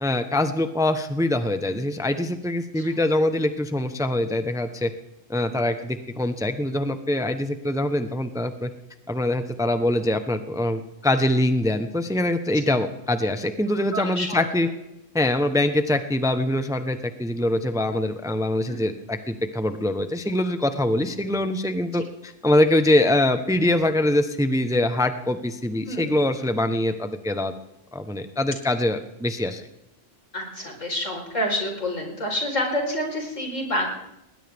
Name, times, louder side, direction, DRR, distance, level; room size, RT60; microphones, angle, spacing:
voice 1, 0.0-4.9 5.3-8.7 9.1-14.7 15.1-27.5 27.9-29.6, left 1 dB, 5° right, 8 dB, 1.0 m, -24 dB
voice 2, 13.9-14.4 18.7-18.9 25.9-26.1 30.3-33.9, left 1 dB, 80° left, 1 dB, 5.0 m, -28 dB
20.0 x 19.5 x 3.6 m, 0.85 s
omnidirectional pair, 1.3 m